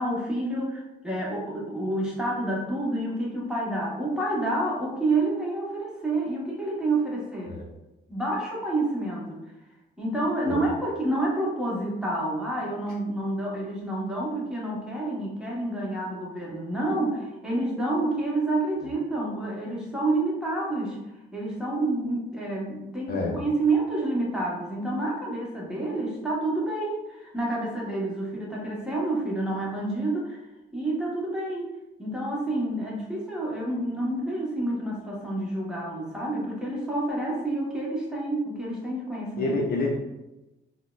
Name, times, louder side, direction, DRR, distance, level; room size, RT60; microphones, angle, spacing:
voice 1, 0.0-7.5 8.1-9.4 10.0-21.0 21.3-30.4 30.7-31.7 32.0-39.6, right 2 dB, 5° right, -4 dB, 1.0 m, -28 dB
voice 2, 23.1-23.4 39.4-40.0, left 2 dB, 50° left, -1 dB, 0.5 m, -27 dB
3.6 x 2.1 x 2.2 m, 0.97 s
cardioid pair, 90°, 20 cm